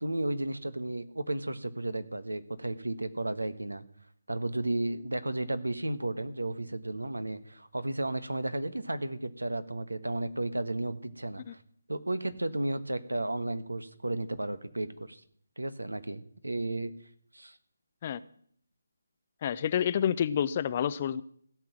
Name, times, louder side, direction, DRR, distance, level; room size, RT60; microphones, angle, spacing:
voice 1, 0.0-3.8 4.3-11.4 11.9-15.2 15.6-16.9 17.3-17.6, right 2 dB, 85° right, 13 dB, 1.4 m, -33 dB
voice 2, 19.4-21.2, left 9 dB, 30° left, 16 dB, 0.6 m, -28 dB
16.5 x 6.1 x 8.9 m, 0.63 s
figure-of-eight pair, 155°, 0 cm